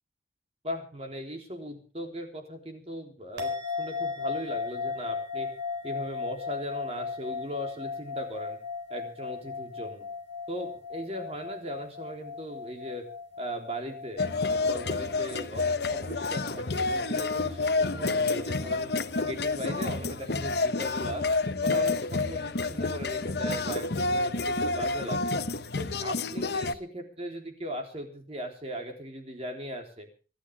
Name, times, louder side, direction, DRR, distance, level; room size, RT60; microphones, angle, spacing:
voice 1, 0.6-3.5 3.8-5.5 5.8-8.6 8.9-10.0 10.5-13.1 13.4-18.9 19.2-21.3 21.6-25.2 25.8-30.1, equal, 30° right, 4 dB, 3.6 m, -38 dB
sound 1, 3.4-19.9, left 5 dB, 75° right, 4.4 m, -37 dB
sound 2, 14.2-26.7, left 3 dB, 60° left, 1.1 m, -29 dB
26.0 x 12.0 x 3.6 m, 0.37 s
head